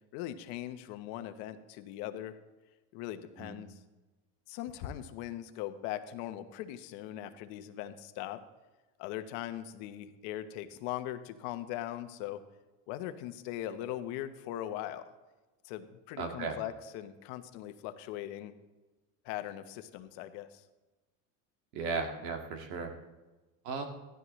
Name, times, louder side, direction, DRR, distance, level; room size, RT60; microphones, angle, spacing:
voice 1, 0.1-2.4 2.9-3.8 4.5-8.4 9.0-12.4 12.9-15.1 15.6-18.6 19.2-20.6, left 12 dB, 65° left, 10 dB, 1.1 m, -40 dB
voice 2, 16.2-16.6 21.7-22.9 23.6-23.9, right 4 dB, 75° right, 4 dB, 2.2 m, -35 dB
15.5 x 12.5 x 3.2 m, 1.2 s
supercardioid pair, 115°, 46 cm